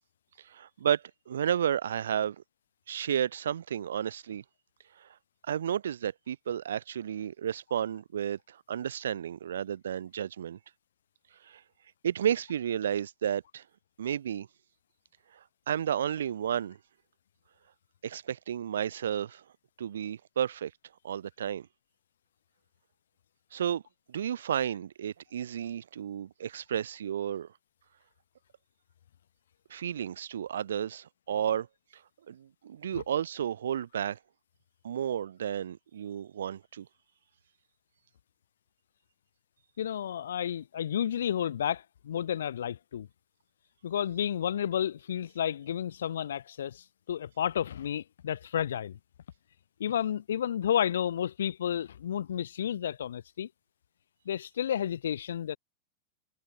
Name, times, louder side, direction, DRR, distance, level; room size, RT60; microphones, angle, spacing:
voice 1, 0.4-2.4 2.9-4.4 5.0-5.1 5.5-10.6 11.4-11.6 12.0-13.6 14.0-14.5 15.7-16.8 18.0-19.4 19.8-20.7 21.0-21.7 23.5-23.8 24.1-27.5 29.7-31.7 32.3-34.2 34.8-36.9, right 9 dB, 65° right, 2.1 m, -32 dB
voice 2, 39.8-43.1 43.8-49.0 49.8-53.5 54.3-55.6, left 9 dB, 65° left, 2.3 m, -31 dB
figure-of-eight pair, 90°, 0 cm